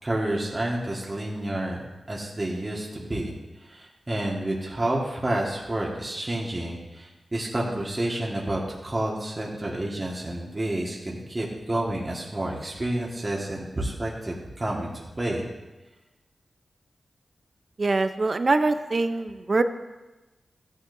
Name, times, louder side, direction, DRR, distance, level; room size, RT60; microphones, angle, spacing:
voice 1, 0.0-3.3 3.6-15.5, right 1 dB, 30° right, -3 dB, 1.7 m, -29 dB
voice 2, 17.8-19.6, right 3 dB, 50° right, 9 dB, 0.6 m, -23 dB
14.0 x 9.4 x 2.7 m, 1.1 s
cardioid pair, 55°, 0 cm